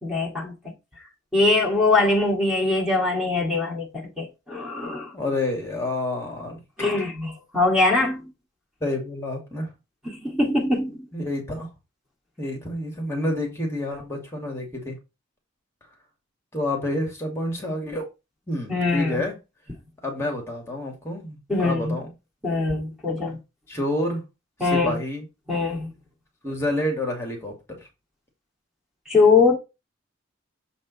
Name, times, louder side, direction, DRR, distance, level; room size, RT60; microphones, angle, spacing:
voice 1, 0.0-0.5 1.3-3.9 4.2-5.1 6.8-8.3 10.1-11.0 18.7-19.2 21.5-21.9 22.4-23.4 24.6-25.0 25.5-25.9 29.1-29.5, left 3 dB, 5° right, 2.3 m, -22 dB
voice 2, 5.1-6.6 8.8-9.7 11.1-11.7 12.4-15.0 16.5-18.1 18.5-19.4 20.0-22.1 23.7-24.2 24.6-25.2 26.4-27.8, left 1 dB, 15° left, 2.4 m, -28 dB
7.3 x 4.2 x 4.1 m
head